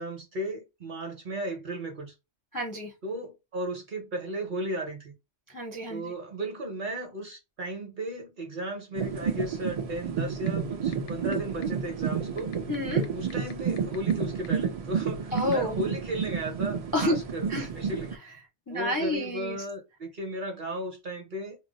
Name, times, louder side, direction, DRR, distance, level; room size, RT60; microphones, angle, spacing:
voice 1, 0.0-2.1 3.0-5.1 5.9-12.5 13.1-17.5 17.7-18.2 18.7-21.6, right 1 dB, 50° right, 0.7 m, -35 dB
voice 2, 2.5-2.9 5.5-6.1 12.7-13.1 15.3-15.8 16.9-17.2 17.5-17.7 18.3-18.4 18.7-19.6, left 1 dB, 30° left, 0.4 m, -30 dB
sound 1, 8.9-18.2, right 6 dB, 75° right, 0.3 m, -30 dB
sound 2, 10.5-10.6 10.9-11.3 11.6-11.7 12.4-14.1 14.4-14.5 15.4-15.5, left 8 dB, 85° left, 0.9 m, -44 dB
2.2 x 2.0 x 3.8 m
omnidirectional pair, 1.2 m